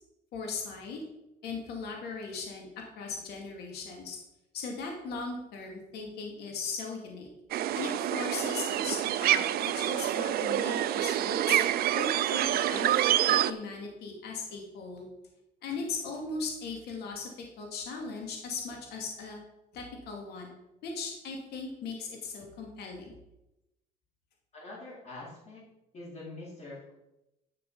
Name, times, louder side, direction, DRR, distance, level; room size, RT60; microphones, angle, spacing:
voice 1, 0.3-1.0 1.4-2.7 3.0-4.2 4.5-7.3 7.7-11.6 11.9-15.1 15.6-17.3 17.6-19.4 19.7-20.5 20.8-23.1, left 4 dB, 75° left, 1 dB, 2.4 m, -38 dB
sound 1, 7.5-13.5, right 12 dB, 65° right, 0.5 m, -27 dB
voice 2, 24.5-25.6 25.9-26.9, left 2 dB, 40° left, -10 dB, 4.2 m, -44 dB
11.0 x 6.1 x 5.5 m, 0.91 s
cardioid pair, 110°, 17 cm